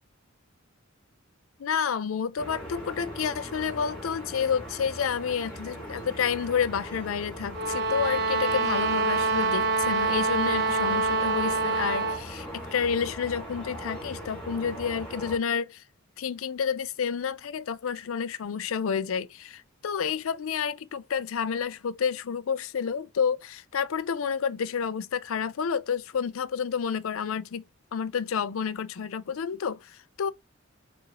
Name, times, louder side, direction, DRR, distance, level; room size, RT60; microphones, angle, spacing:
voice 1, 1.6-12.5 12.7-15.8 16.2-27.6 27.9-30.3, left 7 dB, 80° left, 0.5 m, -30 dB
sound 1, 2.4-15.4, equal, 5° left, 2.4 m, -40 dB
sound 2, 7.5-12.3, right 3 dB, 55° right, 0.7 m, -26 dB
6.7 x 2.6 x 2.9 m
head